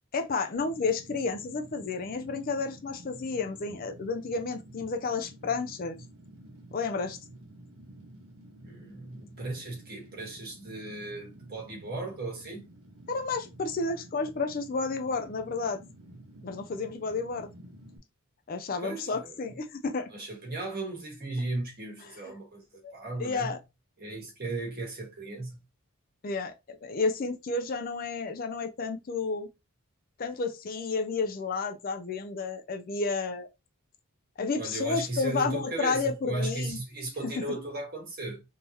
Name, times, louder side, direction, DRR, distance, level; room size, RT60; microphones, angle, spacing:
voice 1, 0.1-6.0 6.7-7.2 13.1-15.8 16.4-17.5 18.5-20.1 22.0-22.2 22.8-22.9 23.2-23.6 26.2-29.5 30.2-33.5 34.4-36.8 37.2-37.4, left 4 dB, 40° left, 0.4 m, -31 dB
Fire, 0.5-18.0, right 1 dB, 85° right, 1.1 m, -51 dB
voice 2, 8.6-12.7 18.8-19.4 20.1-22.6 22.9-23.5 24.0-25.6 34.6-38.4, right 2 dB, 45° right, 1.6 m, -36 dB
3.7 x 2.7 x 2.9 m
head